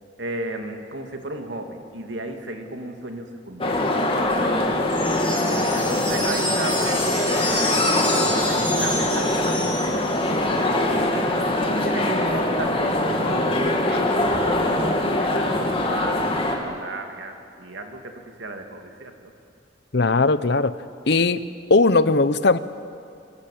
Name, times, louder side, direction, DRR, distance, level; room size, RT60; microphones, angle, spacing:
voice 1, 0.2-4.6 4.9-5.2 5.7-11.1 11.7-19.3, right 1 dB, 85° right, 4 dB, 2.8 m, -35 dB
sound 1, 3.6-16.6, left 1 dB, 30° left, 2.7 m, -23 dB
sound 2, 4.9-10.4, left 1 dB, 10° left, 6.8 m, -29 dB
voice 2, 19.9-20.7 21.1-21.4 21.7-22.6, left 3 dB, 65° left, 14 dB, 0.9 m, -18 dB
26.0 x 22.0 x 8.7 m, 2.4 s
head